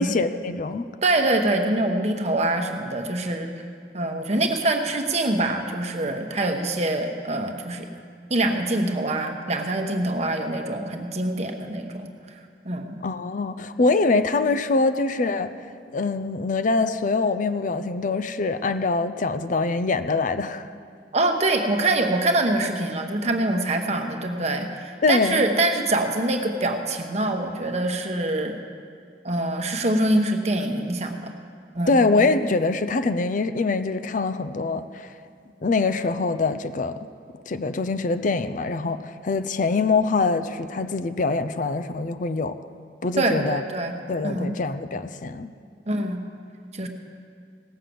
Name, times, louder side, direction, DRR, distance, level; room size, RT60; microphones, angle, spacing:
voice 1, 0.0-0.9 13.0-15.5 15.9-20.7 25.0-25.4 31.9-35.1 35.6-37.0 37.5-42.5 43.0-43.6 44.1-45.5, left 3 dB, 45° left, 10 dB, 0.5 m, -24 dB
voice 2, 1.0-3.5 3.9-7.9 8.3-12.1 12.6-13.0 21.1-28.6 29.2-31.3 31.7-32.0 43.2-44.0 44.2-44.5 45.9-46.2 46.7-46.9, right 2 dB, 40° right, 4 dB, 1.1 m, -24 dB
17.5 x 6.6 x 7.7 m, 2.2 s
head